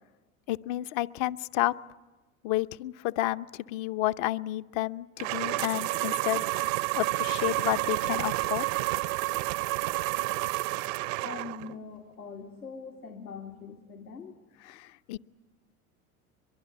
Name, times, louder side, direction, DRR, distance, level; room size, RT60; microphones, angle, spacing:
voice 1, 0.5-1.7 2.4-6.4 7.0-8.7 14.7-15.2, left 16 dB, 50° left, 13 dB, 0.8 m, -30 dB
sound 1, 5.2-11.7, right 19 dB, 60° right, 0.7 m, -30 dB
voice 2, 11.2-14.4, left 5 dB, 90° left, 2 dB, 2.2 m, -42 dB
23.5 x 23.0 x 9.5 m, 1.2 s
hypercardioid pair, 80°, 44 cm